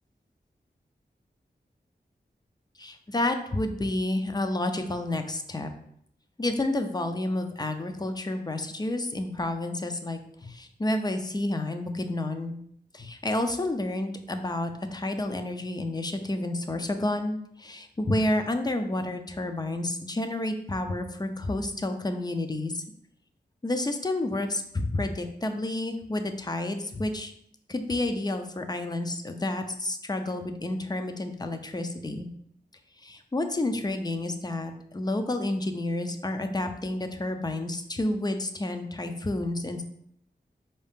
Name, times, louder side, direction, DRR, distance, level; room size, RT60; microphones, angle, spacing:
voice 1, 2.8-5.7 6.4-12.6 12.9-22.8 23.6-27.3 27.7-32.3 33.0-39.8, left 1 dB, 25° left, 6 dB, 0.5 m, -30 dB
4.7 x 2.7 x 3.5 m, 0.70 s
wide cardioid pair, 65°, 17 cm